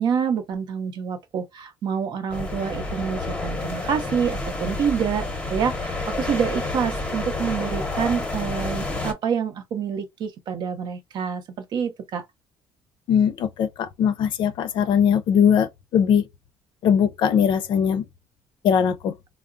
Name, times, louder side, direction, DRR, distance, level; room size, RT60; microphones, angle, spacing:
voice 1, 0.0-12.2, right 7 dB, 60° right, 0.7 m, -27 dB
sound 1, 2.3-9.1, left 2 dB, 15° left, 0.7 m, -29 dB
voice 2, 13.1-16.2 16.8-18.1 18.6-19.1, left 8 dB, 65° left, 0.5 m, -20 dB
3.5 x 2.0 x 2.4 m
cardioid pair, 120°, 9 cm